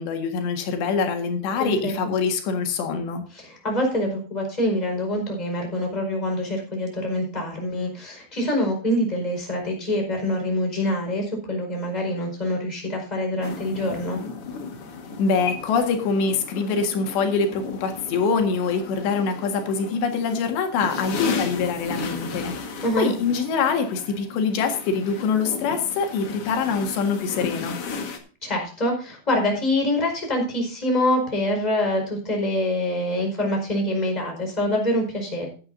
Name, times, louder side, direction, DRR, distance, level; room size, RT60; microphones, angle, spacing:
voice 1, 0.0-3.2 15.2-22.5 23.0-27.8, left 5 dB, 90° left, 5 dB, 4.0 m, -24 dB
voice 2, 1.6-1.9 3.3-14.2 22.8-23.1 28.4-35.5, left 1 dB, 10° left, 1 dB, 4.6 m, -25 dB
sound 1, 13.4-28.2, left 5 dB, 55° left, 1.7 m, -35 dB
15.5 x 11.0 x 2.6 m, 0.40 s
omnidirectional pair, 4.8 m